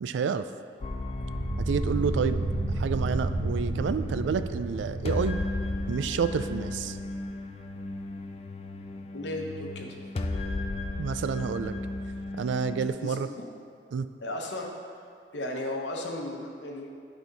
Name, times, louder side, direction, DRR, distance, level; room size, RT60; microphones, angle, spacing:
voice 1, 0.0-0.5 1.6-2.4 2.8-5.4 5.9-7.0 11.0-11.7 12.4-13.3 13.9-14.1, right 6 dB, 85° right, 11 dB, 0.3 m, -29 dB
sound 1, 0.8-12.9, left 2 dB, 35° left, 0.4 m, -35 dB
sound 2, 1.1-6.4, right 2 dB, 10° right, 1.1 m, -32 dB
voice 2, 9.1-10.0 13.0-13.4 14.2-14.7 15.3-16.9, left 1 dB, 85° left, 1 dB, 0.9 m, -35 dB
10.0 x 4.3 x 4.0 m, 2.2 s
head